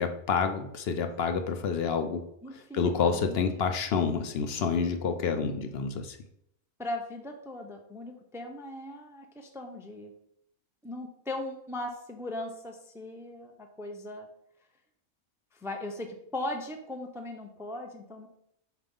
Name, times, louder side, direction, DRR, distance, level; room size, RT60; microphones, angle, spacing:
voice 1, 0.0-2.3 2.5-6.2, left 5 dB, 60° left, 7 dB, 0.7 m, -28 dB
voice 2, 2.4-3.4 6.8-10.1 10.8-14.3 15.5-18.3, left 1 dB, 5° right, 3 dB, 0.3 m, -38 dB
7.3 x 2.4 x 5.3 m, 0.74 s
omnidirectional pair, 1.4 m